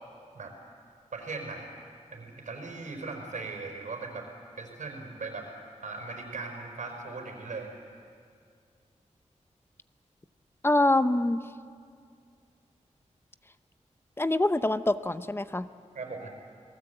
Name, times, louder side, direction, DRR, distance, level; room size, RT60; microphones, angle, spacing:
voice 1, 1.1-1.7 2.1-4.3 4.6-5.5 5.8-7.7 15.9-16.3, right 3 dB, 85° right, 3 dB, 4.4 m, -38 dB
voice 2, 10.6-11.4 14.2-15.7, left 2 dB, 20° left, 12 dB, 0.7 m, -25 dB
28.0 x 19.0 x 7.9 m, 2.3 s
wide cardioid pair, 110°, 13 cm